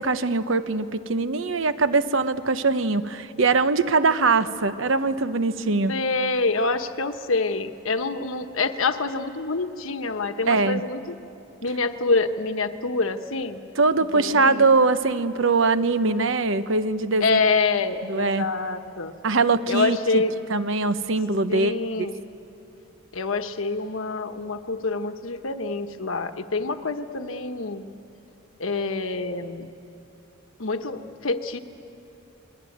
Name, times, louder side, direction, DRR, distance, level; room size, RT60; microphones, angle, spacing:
voice 1, 0.0-6.0 10.5-10.8 13.8-17.4 18.0-18.5 19.2-20.2 20.5-21.7 22.0-22.1, right 3 dB, 65° right, 12 dB, 1.0 m, -22 dB
voice 2, 5.9-11.1 11.6-13.6 14.1-14.7 17.2-19.1 19.7-20.3 21.5-22.1 23.1-27.8 28.6-29.7 30.6-31.6, left 3 dB, 75° left, 8 dB, 1.2 m, -26 dB
27.0 x 21.5 x 9.4 m, 2.8 s
head